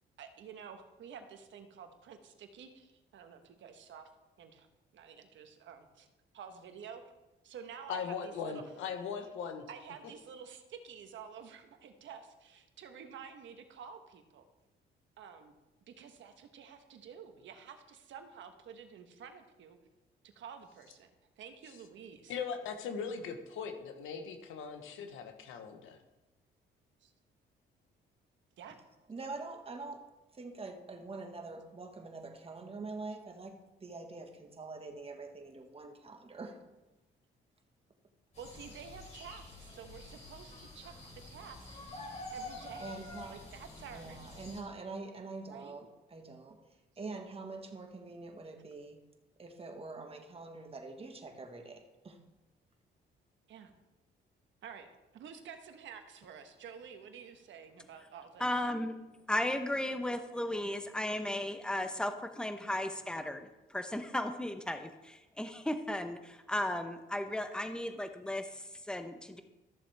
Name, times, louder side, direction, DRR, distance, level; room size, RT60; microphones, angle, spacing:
voice 1, 0.2-4.1 4.4-4.7 4.9-6.1 6.3-7.1 7.4-8.6 9.7-14.5 15.2-15.5 15.9-19.8 20.3-21.1 21.4-22.4 27.0-27.1 28.6-28.8 38.4-40.9 41.3-41.8 42.3-43.0 43.3-44.2 45.5-45.8 53.5-53.7 54.6-54.9 55.1-58.5, right 7 dB, 70° right, 7 dB, 1.2 m, -50 dB
voice 2, 7.9-9.6 22.3-26.0, left 6 dB, 90° left, 6 dB, 1.1 m, -39 dB
voice 3, 29.1-36.6 42.8-43.5 43.9-46.6 47.0-49.0 49.4-52.2, right 3 dB, 30° right, 4 dB, 1.5 m, -45 dB
sound 1, 38.3-44.6, left 2 dB, 35° left, 3.5 m, -48 dB
voice 4, 58.4-58.9 59.3-69.4, left 1 dB, 5° left, 8 dB, 0.9 m, -35 dB
13.5 x 7.1 x 3.4 m, 1.0 s
cardioid pair, 90°, 20 cm